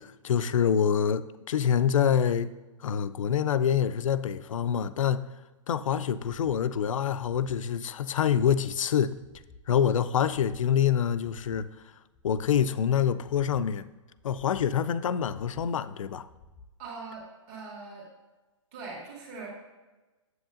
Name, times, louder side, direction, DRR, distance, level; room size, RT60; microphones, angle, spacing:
voice 1, 0.0-2.5 2.8-5.3 5.7-9.1 9.7-11.7 12.2-13.9 14.2-16.3, left 8 dB, 80° left, 14 dB, 0.4 m, -26 dB
sound 1, 9.1-9.7 10.1-10.7 11.1-11.7 12.1-12.7 13.1-13.7 14.1-14.7 15.1-15.7 16.1-16.7 17.2-17.3, left 3 dB, 15° left, 0.7 m, -54 dB
voice 2, 16.8-18.1 18.7-19.5, right 4 dB, 30° right, -4 dB, 2.0 m, -41 dB
7.8 x 7.8 x 2.5 m, 1.2 s
hypercardioid pair, 145°, 17 cm